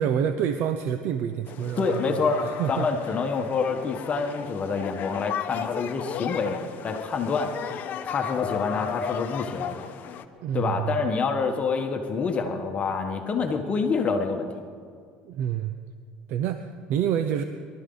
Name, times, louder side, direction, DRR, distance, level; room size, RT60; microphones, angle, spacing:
voice 1, 0.0-2.9 10.4-11.0 15.2-15.7 16.3-17.4, right 9 dB, 60° right, 9 dB, 0.7 m, -27 dB
sound 1, 1.5-10.2, left 8 dB, 50° left, 0.9 m, -35 dB
voice 2, 1.8-6.6 6.8-7.5 8.0-9.9 10.5-14.5, left 4 dB, 35° left, 4 dB, 1.4 m, -27 dB
23.0 x 13.0 x 4.0 m, 2.1 s
cardioid pair, 115°, 4 cm